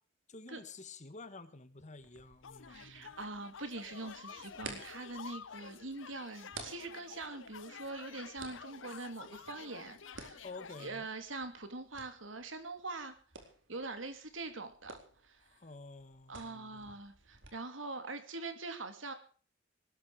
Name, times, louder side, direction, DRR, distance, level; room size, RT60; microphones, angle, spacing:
voice 1, 0.3-3.1 10.4-11.1 15.4-16.9, left 3 dB, 40° left, 11 dB, 1.7 m, -50 dB
sound 1, 2.0-17.5, right 3 dB, 70° right, 4.3 m, -54 dB
sound 2, 2.4-10.9, left 7 dB, 75° left, 0.7 m, -51 dB
voice 2, 2.7-10.4 10.8-13.1 13.7-15.6 16.3-19.1, right 3 dB, 90° right, 8 dB, 2.9 m, -43 dB
20.0 x 13.5 x 4.9 m, 0.40 s
head